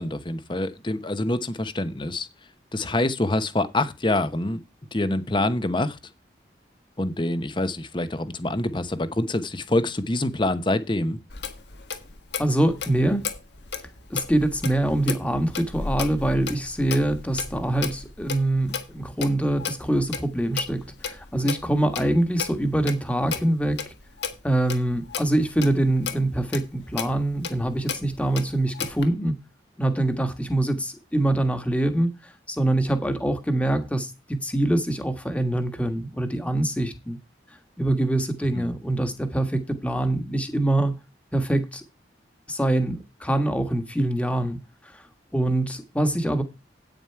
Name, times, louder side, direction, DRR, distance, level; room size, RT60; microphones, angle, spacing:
voice 1, 0.0-2.3 2.7-4.6 4.9-6.0 7.0-11.2 38.5-38.7, left 1 dB, 25° left, 0.9 m, -26 dB
Clock, 11.3-29.1, left 6 dB, 70° left, 1.6 m, -35 dB
voice 2, 12.4-13.3 14.1-23.8 24.4-29.3 29.8-37.2 37.8-40.9 41.3-41.8 42.5-44.6 44.8-45.0 45.3-46.4, right 1 dB, 5° left, 1.5 m, -24 dB
9.1 x 9.0 x 4.6 m
head